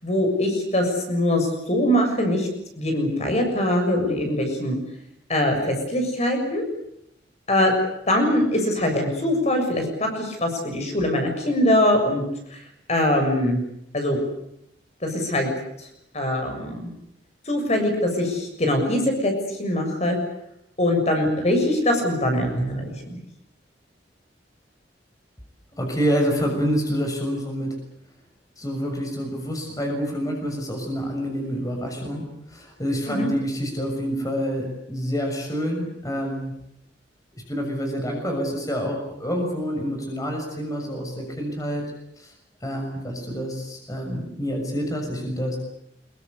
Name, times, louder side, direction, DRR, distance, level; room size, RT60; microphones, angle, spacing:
voice 1, 0.0-2.5 2.8-4.8 5.3-6.6 7.5-7.7 8.1-12.6 12.9-13.6 13.9-14.2 15.0-15.5 15.8-15.9 16.1-16.9 17.5-20.2 20.8-23.2 33.1-33.3, left 1 dB, 40° left, 4 dB, 6.9 m, -22 dB
voice 2, 25.8-27.8 28.6-36.6 37.5-41.8 42.2-42.3 42.6-45.6, equal, 20° left, 2 dB, 6.5 m, -27 dB
26.0 x 23.5 x 8.2 m, 0.77 s
head